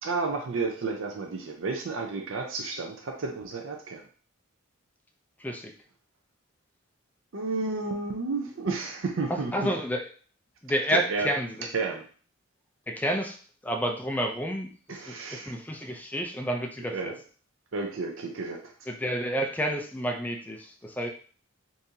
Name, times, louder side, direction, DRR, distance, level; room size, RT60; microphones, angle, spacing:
voice 1, 0.0-4.1 7.3-9.7 10.9-11.3 11.7-12.0 14.9-15.6 16.9-17.2 17.7-18.9, right 3 dB, 70° right, 2 dB, 0.5 m, -32 dB
voice 2, 5.4-5.7 9.3-10.1 10.6-11.5 12.9-13.4 13.6-17.1 18.9-21.1, equal, 10° left, 3 dB, 0.4 m, -30 dB
3.7 x 2.7 x 2.7 m, 0.42 s
head